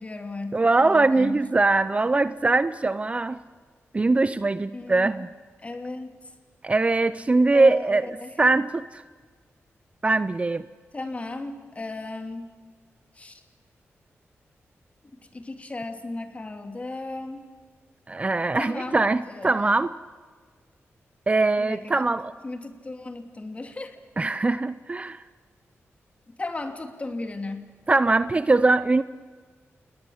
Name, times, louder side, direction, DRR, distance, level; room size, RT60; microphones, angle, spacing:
voice 1, 0.0-1.4 4.7-5.1 5.6-6.1 7.5-8.3 10.9-12.5 13.1-13.4 15.3-17.4 18.5-19.7 21.6-22.0 22.4-24.0 26.4-27.7, left 2 dB, 30° left, 7 dB, 2.7 m, -35 dB
voice 2, 0.5-3.4 3.9-5.3 6.6-8.1 8.4-9.0 10.0-10.7 18.1-20.0 21.3-22.3 24.2-25.2 27.9-29.0, right 3 dB, 25° right, 15 dB, 0.6 m, -22 dB
29.0 x 19.5 x 7.3 m, 1.6 s
wide cardioid pair, 100°, 5 cm